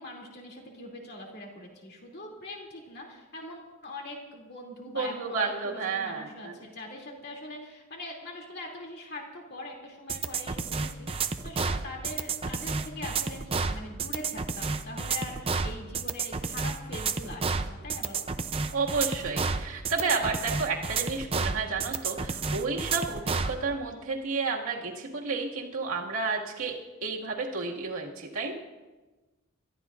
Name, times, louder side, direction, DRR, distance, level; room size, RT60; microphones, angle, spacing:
voice 1, 0.0-18.3, left 1 dB, 50° left, 0 dB, 2.8 m, -42 dB
voice 2, 4.9-6.6 18.7-28.5, right 4 dB, 90° right, -2 dB, 2.1 m, -31 dB
sound 1, 10.1-23.6, right 4 dB, 25° right, 0.5 m, -30 dB
28.0 x 13.0 x 2.6 m, 1.2 s
head